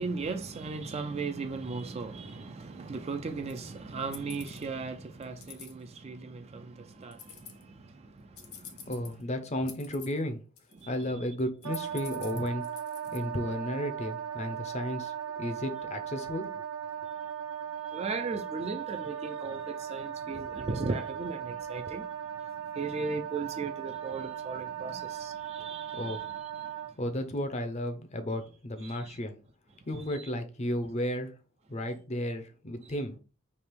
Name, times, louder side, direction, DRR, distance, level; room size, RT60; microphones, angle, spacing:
voice 1, 0.0-8.9 10.7-10.9 13.1-13.2 17.9-22.1 22.7-26.7 28.8-29.2 30.2-30.3 32.8-33.0, right 4 dB, 30° right, 0.3 m, -37 dB
sound 1, 3.5-3.6 4.1-4.7 5.2-5.7 7.1-7.6 8.4-9.2 9.7-10.2 10.6-11.0 11.4-13.2, left 9 dB, 85° left, 0.9 m, -47 dB
voice 2, 8.9-10.4 10.9-12.6 13.1-16.5 25.9-26.2 27.0-29.3 29.9-31.3 31.7-33.1, left 1 dB, 30° left, 0.6 m, -33 dB
Wind instrument woodwind instrument, 11.6-26.9, right 9 dB, 85° right, 1.0 m, -38 dB
3.3 x 2.9 x 4.4 m
head